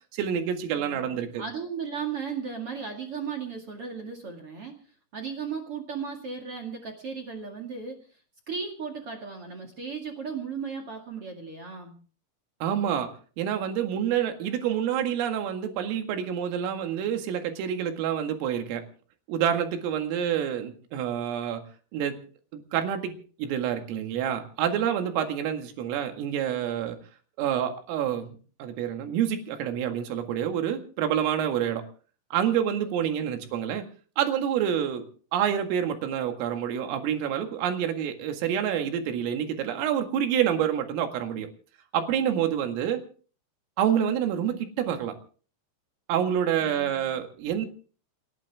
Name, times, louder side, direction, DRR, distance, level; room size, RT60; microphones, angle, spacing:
voice 1, 0.1-1.4 12.6-13.1 13.4-18.8 19.3-21.6 21.9-22.2 22.5-23.1 23.4-27.0 27.4-31.8 32.3-33.8 34.2-35.1 35.3-41.5 41.9-43.0 43.8-45.2 46.1-47.7, right 9 dB, 80° right, 5 dB, 4.5 m, -27 dB
voice 2, 0.7-4.8 5.1-8.0 8.5-11.9 32.8-32.9 46.6-47.1, right 6 dB, 50° right, 2 dB, 1.8 m, -36 dB
29.0 x 11.0 x 3.6 m, 0.41 s
omnidirectional pair, 5.9 m